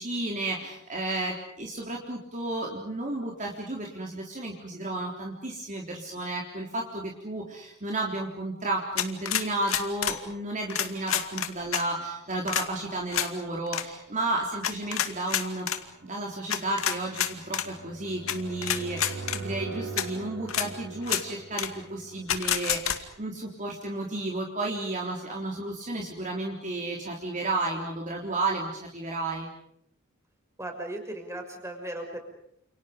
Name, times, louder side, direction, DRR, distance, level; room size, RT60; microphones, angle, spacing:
voice 1, 0.0-15.7 16.0-29.5, right 2 dB, 35° right, -1 dB, 3.7 m, -32 dB
sound 1, 9.0-10.2 10.7-11.8 12.5-12.7 13.1-13.3 13.7-13.8 14.6-15.8 16.5-17.7 18.3-18.4 18.6-19.4 20.0-20.1 20.5-20.7 21.0-21.2 21.6-21.7 22.3-23.0, left 10 dB, 75° left, 2.3 m, -28 dB
sound 2, 12.7-23.2, right 4 dB, 60° right, 5.4 m, -43 dB
voice 2, 30.6-32.2, right 1 dB, 15° right, 3 dB, 6.4 m, -36 dB
30.0 x 29.0 x 5.2 m, 0.71 s
head